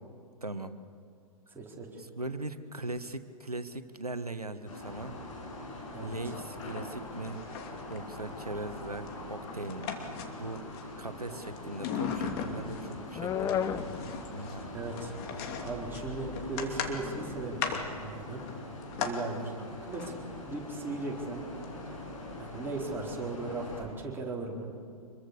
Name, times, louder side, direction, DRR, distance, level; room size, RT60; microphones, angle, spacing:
voice 1, 0.4-0.8 2.0-5.2 6.0-7.5 7.9-10.0 10.3-14.7 19.2-19.5, right 2 dB, 85° right, 10 dB, 1.5 m, -40 dB
voice 2, 1.5-2.0 5.9-6.3 14.7-15.1 15.6-17.7 18.0-18.4 19.0-19.6 19.9-20.1 20.5-21.4 21.9-22.0 22.4-24.7, right 3 dB, 10° right, -2 dB, 4.4 m, -37 dB
sound 1, 4.6-23.8, left 2 dB, 60° left, 7.4 m, -43 dB
sound 2, 6.3-6.9 7.2-8.0 9.1-10.8 11.2-12.9 13.4-19.2 19.8-20.1 21.6-21.7 22.0-22.1, left 7 dB, 40° left, 2.8 m, -38 dB
sound 3, 12.1-18.2, left 8 dB, 15° left, 0.8 m, -37 dB
26.0 x 22.5 x 6.9 m, 2.4 s
figure-of-eight pair, 105°, 19 cm